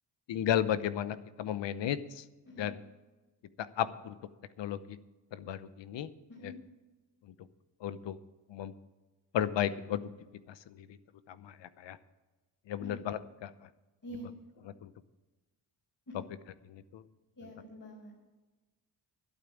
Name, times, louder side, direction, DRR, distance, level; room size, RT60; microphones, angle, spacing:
voice 1, 0.3-2.2 2.6-2.8 3.6-4.2 4.6-5.0 5.3-6.1 6.4-6.5 7.8-8.2 8.5-8.7 9.3-10.1 10.5-11.0 11.3-12.0 12.7-13.5 14.6-14.9 16.1-16.2 16.7-17.0, left 10 dB, 80° left, 15 dB, 0.8 m, -34 dB
voice 2, 17.4-18.2, equal, 45° left, -5 dB, 5.0 m, -46 dB
11.5 x 8.7 x 7.2 m, 1.2 s
cardioid pair, 70°, 44 cm